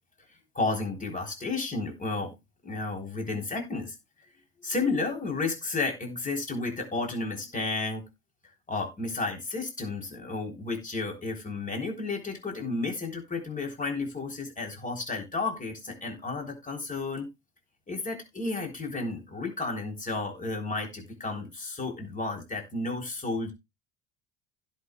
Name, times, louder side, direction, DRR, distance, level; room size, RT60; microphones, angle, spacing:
voice 1, 0.5-2.3 2.6-4.0 4.6-8.1 8.7-17.3 17.9-23.5, left 3 dB, 20° left, 2 dB, 3.6 m, -32 dB
16.0 x 5.7 x 2.3 m, 0.23 s
figure-of-eight pair, 65°, 40 cm